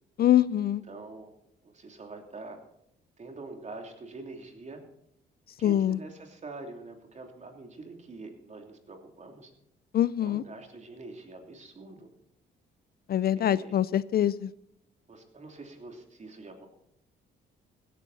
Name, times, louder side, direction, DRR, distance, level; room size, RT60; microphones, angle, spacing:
voice 1, 0.2-0.8 5.6-6.0 9.9-10.4 13.1-14.5, left 11 dB, 50° left, 19 dB, 0.4 m, -24 dB
voice 2, 0.9-1.3 1.6-2.6 3.2-4.8 5.6-9.5 10.2-12.1 13.3-13.8 15.1-16.7, right 3 dB, 35° right, 4 dB, 3.0 m, -45 dB
16.5 x 13.0 x 4.1 m, 0.76 s
cardioid pair, 90°, 20 cm